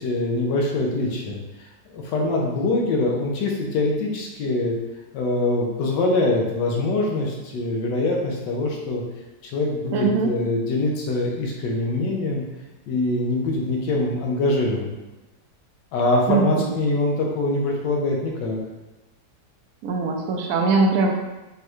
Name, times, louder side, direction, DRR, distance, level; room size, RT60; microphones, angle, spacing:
voice 1, 0.0-1.7 1.9-4.7 5.1-9.0 9.4-12.4 12.9-15.0 15.9-18.6, left 2 dB, 85° left, -1 dB, 1.3 m, -24 dB
voice 2, 9.9-10.3 16.3-16.7 19.8-21.1, right 4 dB, 70° right, 2 dB, 0.9 m, -21 dB
5.2 x 2.3 x 3.0 m, 1.0 s
omnidirectional pair, 1.9 m